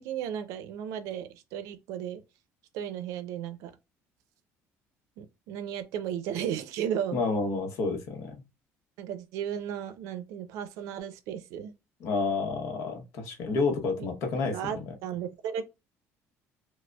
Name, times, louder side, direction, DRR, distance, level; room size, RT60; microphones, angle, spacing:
voice 1, 0.0-2.2 2.7-3.7 5.2-7.2 9.0-11.7 14.0-14.1 14.4-15.6, right 9 dB, 85° right, 0.4 m, -35 dB
voice 2, 7.1-8.4 12.0-14.8, left 4 dB, 65° left, 0.8 m, -30 dB
4.8 x 2.0 x 2.2 m
cardioid pair, 160°, 5 cm